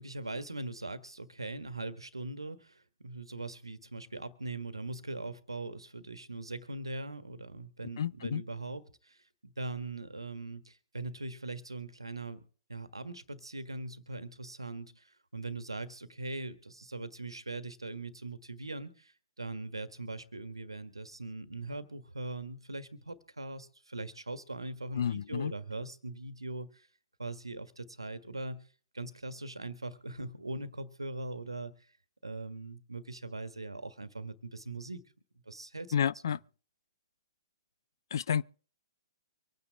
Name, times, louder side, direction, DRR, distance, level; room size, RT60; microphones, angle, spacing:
voice 1, 0.0-12.4 12.7-26.9 27.2-28.7 28.9-31.7 32.2-35.0 35.5-35.9 36.3-36.4, right 2 dB, 85° right, 1.6 m, -41 dB
voice 2, 8.0-8.4 25.0-25.5 35.9-36.4 38.1-38.4, left 8 dB, 55° left, 0.5 m, -30 dB
25.0 x 9.6 x 3.6 m
figure-of-eight pair, 120°, 3 cm